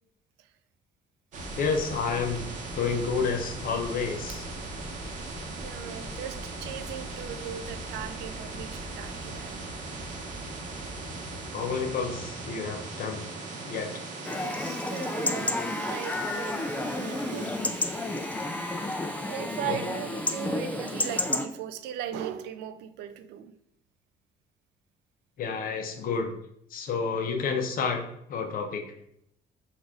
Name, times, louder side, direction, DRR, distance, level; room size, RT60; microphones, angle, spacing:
sound 1, 1.3-21.2, right 2 dB, 45° right, 0.9 m, -39 dB
voice 1, 1.6-2.5 2.7-4.4 11.5-13.2 13.6-13.9 19.7-19.8 25.4-26.3 26.7-28.0 28.3-28.8, left 5 dB, 60° left, 4 dB, 0.8 m, -29 dB
voice 2, 5.3-9.7 14.2-17.6 19.2-23.5, right 9 dB, 90° right, 11 dB, 0.4 m, -38 dB
Chatter / Livestock farm animals working animals / Chirp tweet, 14.3-21.5, left 2 dB, 10° left, 0.3 m, -31 dB
4.2 x 2.5 x 4.7 m, 0.73 s
cardioid pair, 110°, 17 cm